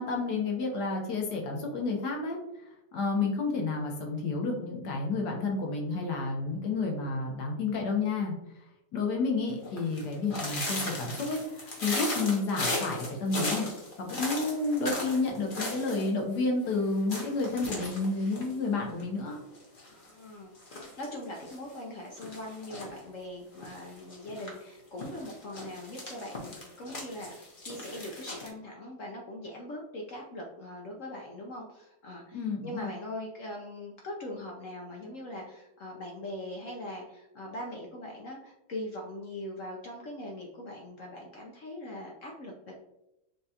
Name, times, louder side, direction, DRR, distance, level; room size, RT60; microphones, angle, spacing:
voice 1, 0.0-8.3 8.9-13.7 14.0-19.4 32.3-32.9, left 3 dB, 65° left, 1 dB, 1.4 m, -30 dB
sound 1, 9.6-16.1 16.3-16.4 16.7-16.8 17.1-19.2 19.5-20.1 20.6-21.6 22.2-23.0 23.6-24.5 25.0-28.5, left 2 dB, 40° left, 0.8 m, -37 dB
voice 2, 19.9-42.8, left 1 dB, 80° left, -1 dB, 0.7 m, -41 dB
6.8 x 2.4 x 2.8 m, 0.91 s
omnidirectional pair, 2.1 m